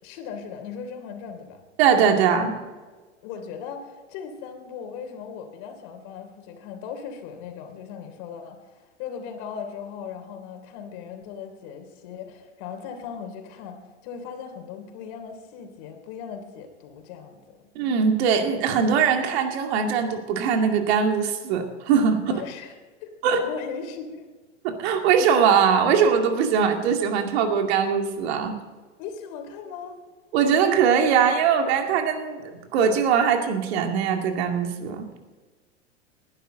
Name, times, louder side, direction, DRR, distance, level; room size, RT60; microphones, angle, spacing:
voice 1, 0.0-1.6 3.2-17.6 22.3-22.7 23.0-24.2 29.0-30.0, left 7 dB, 50° left, 5 dB, 3.3 m, -38 dB
voice 2, 1.8-2.5 17.8-22.4 23.2-23.4 24.6-28.5 30.3-35.1, right 7 dB, 60° right, 4 dB, 2.4 m, -21 dB
19.5 x 11.5 x 3.9 m, 1.3 s
hypercardioid pair, 100°, 37 cm